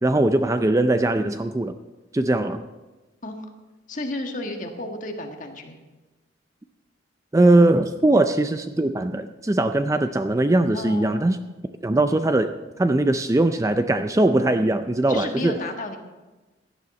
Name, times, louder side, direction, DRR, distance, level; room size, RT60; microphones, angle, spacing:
voice 1, 0.0-1.8 2.1-2.6 7.3-11.4 11.8-12.5 12.8-15.6, right 2 dB, 15° right, 9 dB, 0.4 m, -20 dB
voice 2, 3.9-5.8 10.7-11.2 15.1-16.0, left 2 dB, 40° left, 3 dB, 1.6 m, -32 dB
16.5 x 11.0 x 4.2 m, 1.2 s
head